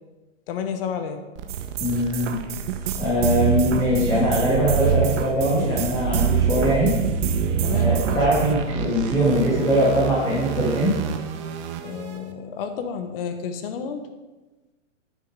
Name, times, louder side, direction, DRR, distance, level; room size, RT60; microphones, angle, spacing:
voice 1, 0.5-1.2 7.6-8.2 11.8-14.0, left 7 dB, 45° left, 7 dB, 1.2 m, -31 dB
sound 1, 1.4-12.2, right 7 dB, 25° right, 0.5 m, -30 dB
sound 2, 1.5-8.5, right 9 dB, 65° right, 1.0 m, -25 dB
voice 2, 1.8-2.4 3.0-6.9 7.7-10.9, equal, 10° left, -7 dB, 1.9 m, -21 dB
9.7 x 7.1 x 4.9 m, 1.2 s
hypercardioid pair, 155°, 38 cm